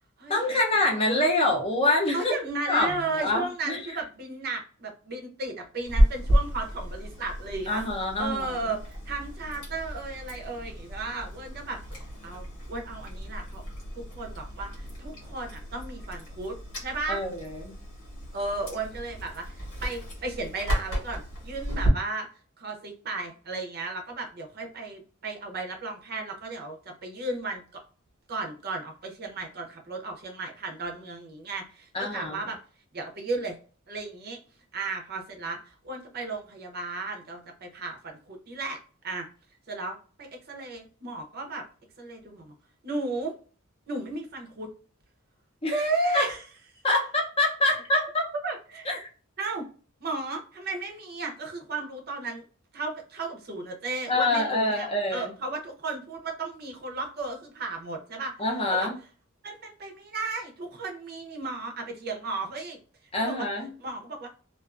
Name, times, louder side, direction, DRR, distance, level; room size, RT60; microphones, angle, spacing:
voice 1, 0.3-2.3 2.7-3.8 7.7-8.8 17.1-17.7 31.9-32.5 45.6-45.7 46.1-46.3 46.8-48.3 48.9-49.1 54.1-55.3 58.4-58.9 63.1-63.7, left 2 dB, 30° left, 1 dB, 0.6 m, -26 dB
voice 2, 2.1-7.8 8.2-11.8 12.2-13.6 14.1-16.5 16.8-17.2 18.3-22.3 22.6-26.8 27.0-27.8 28.3-32.6 32.9-33.6 33.9-34.4 34.7-38.8 39.0-39.3 39.7-41.6 42.0-42.5 42.8-43.3 43.9-44.7 45.7-46.4 48.4-49.0 49.4-49.7 50.0-52.4 52.7-58.3 58.7-58.9 59.4-62.8 63.2-63.5 63.8-64.3, right 3 dB, 50° right, 2 dB, 0.6 m, -34 dB
Chewing mastication, 5.9-21.9, equal, 90° left, 1.2 m, -32 dB
2.4 x 2.3 x 2.4 m, 0.39 s
head